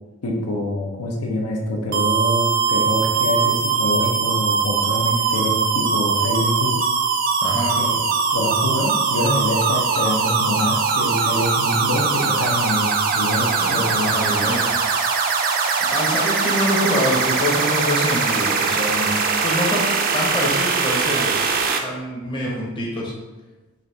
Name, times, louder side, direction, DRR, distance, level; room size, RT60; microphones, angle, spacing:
voice 1, 0.2-6.8 7.8-8.0 8.3-14.1, left 1 dB, 85° left, 0 dB, 0.7 m, -25 dB
sound 1, 1.9-21.8, right 5 dB, 40° right, 0.3 m, -21 dB
voice 2, 7.4-7.7 13.6-14.8 15.9-19.1 19.4-19.9 20.1-23.1, left 1 dB, 20° left, -4 dB, 0.7 m, -25 dB
4.0 x 2.5 x 3.2 m, 1.2 s
head